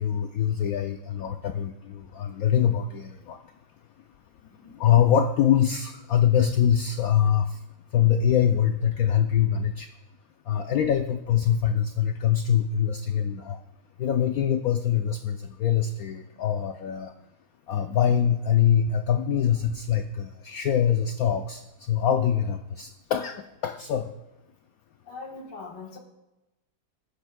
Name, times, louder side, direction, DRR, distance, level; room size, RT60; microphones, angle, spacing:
voice 1, 0.0-3.4 4.7-7.6 7.9-9.9 10.5-13.6 14.0-17.1 17.7-24.1, left 9 dB, 85° left, 7 dB, 0.7 m, -24 dB
voice 2, 4.4-4.8 17.7-18.0 25.1-26.0, left 3 dB, 65° left, 2 dB, 1.9 m, -42 dB
20.0 x 9.9 x 2.2 m, 1.0 s
omnidirectional pair, 2.1 m